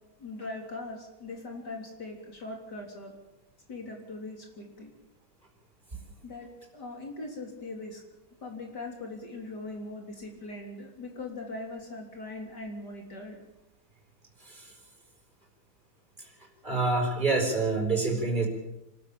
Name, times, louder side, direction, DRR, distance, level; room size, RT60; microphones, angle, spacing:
voice 1, 0.2-3.1 3.7-4.9 6.2-8.0 8.4-13.4, left 2 dB, 55° left, 1 dB, 4.0 m, -40 dB
voice 2, 14.4-14.7 16.6-18.5, right 3 dB, 25° right, 2 dB, 5.0 m, -27 dB
26.0 x 13.5 x 8.6 m, 0.94 s
omnidirectional pair, 2.1 m